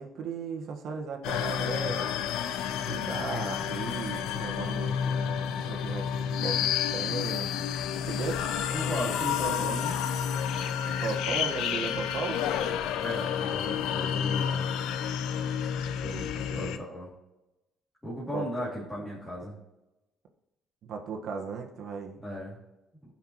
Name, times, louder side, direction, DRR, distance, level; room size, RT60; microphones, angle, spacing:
voice 1, 0.0-2.1 2.8-7.6 8.0-8.4 10.8-12.4 16.0-16.8 18.3-18.6 20.8-22.2, right 5 dB, 65° right, 2 dB, 1.5 m, -36 dB
sound 1, 1.2-16.8, left 8 dB, 85° left, 0.6 m, -30 dB
voice 2, 8.7-9.9 13.0-14.7 16.3-17.1 18.0-19.5 22.2-22.6, equal, 5° left, -9 dB, 2.7 m, -36 dB
15.0 x 5.9 x 3.1 m, 0.97 s
cardioid pair, 110°, 0 cm